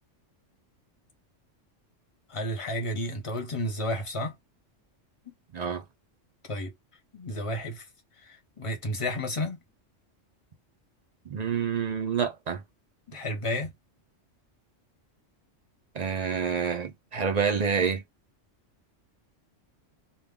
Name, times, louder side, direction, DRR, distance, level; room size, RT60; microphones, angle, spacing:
voice 1, 2.3-4.3 6.5-6.7 7.1-7.8 8.2-9.6 13.1-13.7, left 1 dB, 30° left, 0.7 m, -31 dB
voice 2, 5.5-5.8 11.3-12.6 15.9-18.0, right 6 dB, 55° right, 0.5 m, -28 dB
2.2 x 2.1 x 3.5 m
omnidirectional pair, 1.3 m